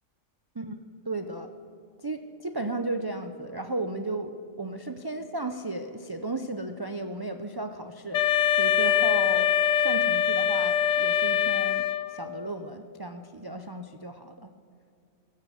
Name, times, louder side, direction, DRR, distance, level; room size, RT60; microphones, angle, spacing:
voice 1, 1.1-1.5 2.0-14.5, right 2 dB, 35° right, 7 dB, 0.3 m, -35 dB
Wind instrument woodwind instrument, 8.1-12.3, left 9 dB, 80° left, 1.0 m, -23 dB
15.0 x 14.0 x 6.5 m, 2.5 s
omnidirectional pair, 1.3 m